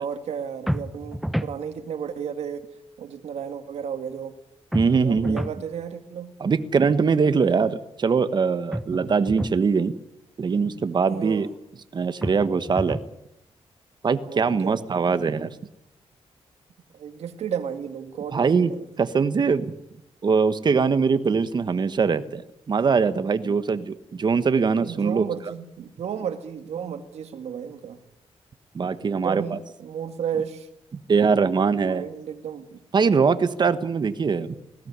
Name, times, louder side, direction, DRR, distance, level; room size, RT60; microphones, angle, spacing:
voice 1, 0.0-2.6 3.0-4.4 5.0-6.3 11.1-11.5 14.2-14.8 16.9-18.9 23.4-23.5 24.8-28.0 29.0-30.7 31.7-32.8, right 8 dB, 85° right, 8 dB, 2.1 m, -33 dB
sound 1, 0.7-1.6 4.7-5.6 8.7-9.6 12.2-13.1, equal, ahead, 0.9 m, -30 dB
voice 2, 4.7-5.4 6.4-9.9 10.4-11.5 11.9-13.0 14.0-15.5 18.3-18.7 19.0-19.7 20.2-22.4 22.7-25.2 28.7-29.6 31.1-32.0 32.9-34.6, right 5 dB, 45° right, 12 dB, 1.3 m, -22 dB
20.0 x 16.5 x 9.6 m, 0.86 s
cardioid pair, 110°, 11 cm